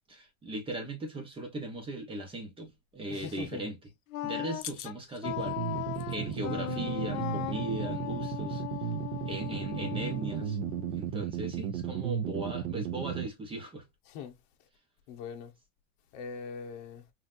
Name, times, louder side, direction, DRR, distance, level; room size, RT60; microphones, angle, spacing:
voice 1, 0.1-3.8 4.2-5.6 6.1-8.6 9.2-10.6 10.9-13.8, right 2 dB, 10° right, 1.2 m, -38 dB
voice 2, 3.1-3.7 4.6-5.2 14.0-14.4 15.1-15.5 16.1-17.1, left 7 dB, 45° left, 1.3 m, -41 dB
Wind instrument woodwind instrument, 4.1-11.1, left 16 dB, 70° left, 0.7 m, -38 dB
sound 1, 5.3-13.3, right 9 dB, 30° right, 0.3 m, -35 dB
5.7 x 2.8 x 2.6 m
supercardioid pair, 160°, 44 cm